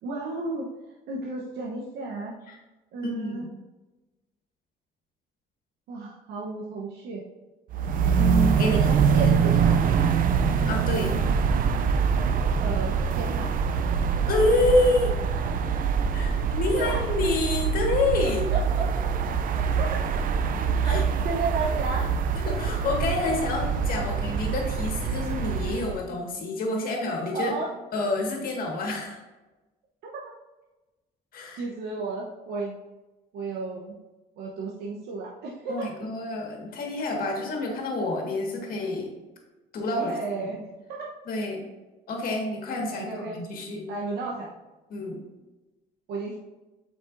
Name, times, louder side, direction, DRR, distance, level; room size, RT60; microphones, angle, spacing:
voice 1, 0.0-0.7 1.1-2.3 2.9-3.5 5.9-7.2 8.6-10.2 12.6-13.7 16.8-17.0 18.5-18.8 19.8-19.9 20.8-22.1 24.1-24.2 27.3-27.7 31.6-32.7 33.3-34.0 34.4-35.9 39.9-41.1 42.9-43.4 43.9-44.5 46.1-46.4, right 3 dB, 75° right, -3 dB, 1.0 m, -33 dB
voice 2, 3.0-3.5 8.2-8.9 9.2-9.3 10.6-11.2 14.3-15.2 16.1-18.4 20.8-21.0 22.4-27.5 27.9-29.2 31.3-31.6 35.7-39.1 39.7-40.5 41.3-41.6 42.1-43.9 44.9-45.2, left 2 dB, 60° left, 1 dB, 1.8 m, -28 dB
sound 1, 7.7-26.0, right 6 dB, 55° right, 0.5 m, -24 dB
7.5 x 5.2 x 2.6 m, 1.1 s
cardioid pair, 110°, 17 cm